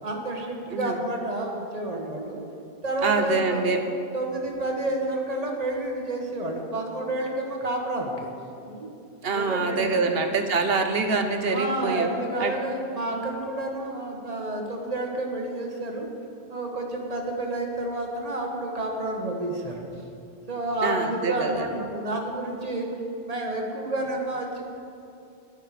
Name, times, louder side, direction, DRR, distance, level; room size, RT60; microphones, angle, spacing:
voice 1, 0.0-2.4 2.8-3.6 4.1-8.3 8.7-8.9 9.3-10.1 11.4-16.1 16.5-19.8 20.5-22.9 23.2-24.6, right 1 dB, 35° right, 0 dB, 1.7 m, -30 dB
voice 2, 3.0-3.8 9.2-12.1 12.4-12.5 20.8-21.7, right 4 dB, 65° right, 5 dB, 1.2 m, -25 dB
13.5 x 11.0 x 5.0 m, 2.7 s
omnidirectional pair, 1.1 m